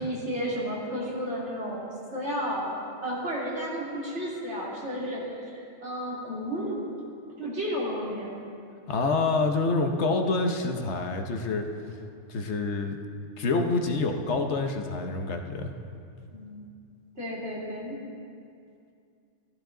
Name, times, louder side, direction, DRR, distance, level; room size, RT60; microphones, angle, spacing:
voice 1, 0.0-6.9 7.4-8.3 16.3-16.6 17.2-18.0, equal, 70° right, -5 dB, 2.8 m, -32 dB
voice 2, 8.9-11.6 12.3-13.0 13.4-15.7, left 3 dB, 70° left, 5 dB, 1.2 m, -27 dB
14.5 x 12.0 x 3.8 m, 2.5 s
omnidirectional pair, 1.2 m